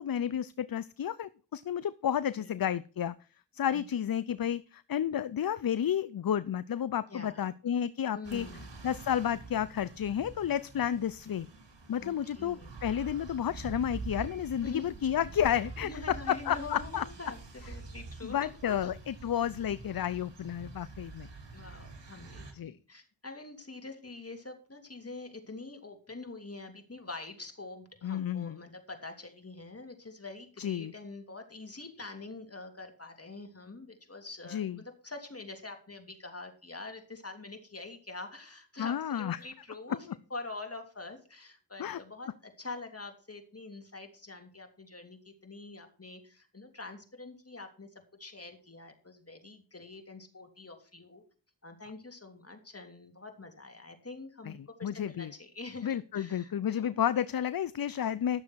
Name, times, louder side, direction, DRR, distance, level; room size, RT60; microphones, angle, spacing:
voice 1, 0.0-3.1 3.5-8.5 8.8-11.5 11.9-17.0 18.2-21.3 22.5-22.8 28.0-28.6 30.6-30.9 34.5-34.8 38.8-39.4 41.8-42.0 54.5-55.3 55.8-58.4, left 9 dB, 50° left, 17 dB, 0.6 m, -31 dB
voice 2, 7.1-7.5 8.1-8.7 12.0-12.7 14.6-14.9 15.8-18.9 21.5-47.9 48.2-51.2 51.6-56.7 58.0-58.1, left 3 dB, 30° left, 5 dB, 3.1 m, -45 dB
sound 1, 8.2-22.5, right 3 dB, 70° right, 3.3 m, -46 dB
12.0 x 7.0 x 6.3 m, 0.37 s
cardioid pair, 50°, 44 cm